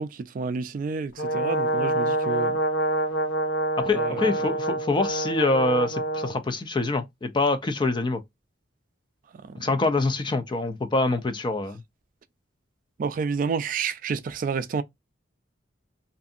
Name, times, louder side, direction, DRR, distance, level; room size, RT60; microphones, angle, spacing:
voice 1, 0.0-2.6 3.9-4.3 13.0-14.8, right 5 dB, 45° right, 0.3 m, -29 dB
Brass instrument, 1.2-6.4, right 1 dB, 65° left, 0.7 m, -26 dB
voice 2, 3.8-8.2 9.6-11.8, left 2 dB, 25° left, 0.4 m, -25 dB
2.6 x 2.5 x 2.4 m
head